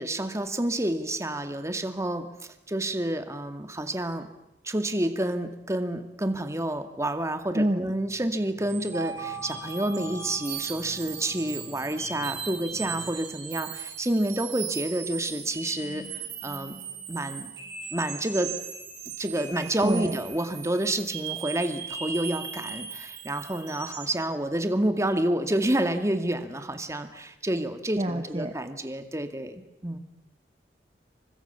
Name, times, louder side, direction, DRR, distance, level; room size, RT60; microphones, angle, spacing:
voice 1, 0.0-2.3 2.7-4.3 4.6-16.0 16.4-16.8 17.1-17.5 17.9-18.5 19.2-30.0, right 1 dB, 15° right, 7 dB, 2.2 m, -29 dB
voice 2, 7.5-7.8 19.8-20.2 28.0-28.5, right 1 dB, 35° right, 6 dB, 1.4 m, -27 dB
sound 1, 7.9-13.2, equal, 25° left, 2.3 m, -50 dB
sound 2, 8.7-24.2, right 7 dB, 80° right, 7.8 m, -38 dB
29.5 x 24.5 x 7.1 m, 0.92 s
head